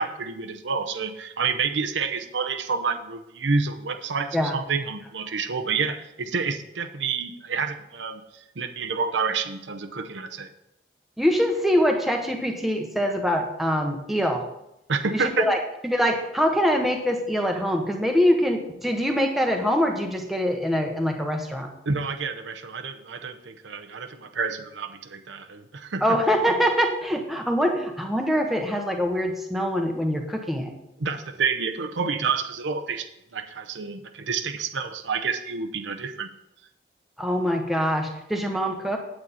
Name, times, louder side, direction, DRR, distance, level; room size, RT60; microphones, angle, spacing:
voice 1, 0.0-8.2 8.6-10.5 14.9-15.5 21.8-26.2 31.0-33.1 33.3-36.3, right 5 dB, 85° right, 7 dB, 0.8 m, -28 dB
voice 2, 11.2-14.5 15.1-15.6 15.8-21.7 26.0-30.7 37.2-39.0, equal, ahead, 2 dB, 0.9 m, -24 dB
8.9 x 8.5 x 4.2 m, 0.87 s
head